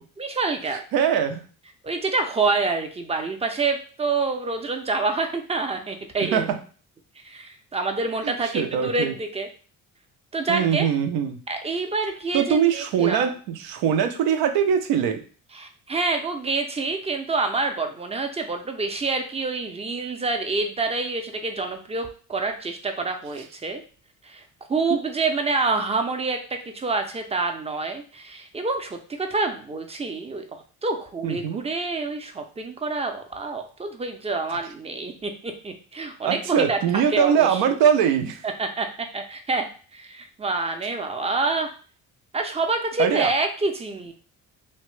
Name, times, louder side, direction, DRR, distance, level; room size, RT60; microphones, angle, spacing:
voice 1, 0.2-0.8 1.8-6.5 7.2-9.5 10.3-10.9 11.5-13.3 15.5-23.8 24.2-24.4 24.7-30.5 30.8-37.6 38.4-41.7 42.3-44.1, right 3 dB, 20° right, 5 dB, 0.4 m, -27 dB
voice 2, 0.7-1.5 6.2-6.6 8.2-9.1 10.5-11.4 12.3-15.2 31.2-31.6 36.2-38.4 43.0-43.3, right 8 dB, 85° right, 7 dB, 0.5 m, -22 dB
2.8 x 2.1 x 3.1 m, 0.40 s
cardioid pair, 85°, 36 cm